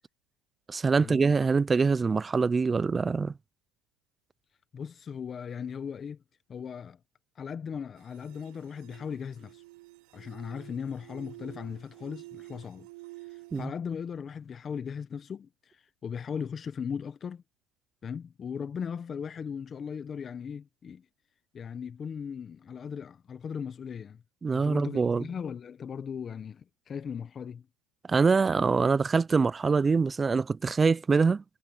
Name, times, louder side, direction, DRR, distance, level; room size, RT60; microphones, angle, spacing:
voice 1, 0.7-3.3 13.5-13.7 24.4-25.2 28.1-31.4, right 4 dB, 20° right, 0.3 m, -24 dB
voice 2, 4.7-6.2 6.5-7.0 7.3-9.6 10.1-12.9 13.3-17.4 18.0-21.1 21.5-24.2 24.5-27.7, left 7 dB, 30° left, 1.2 m, -38 dB
sound 1, 8.0-13.7, right 23 dB, 70° right, 0.8 m, -49 dB
supercardioid pair, 115°, 0 cm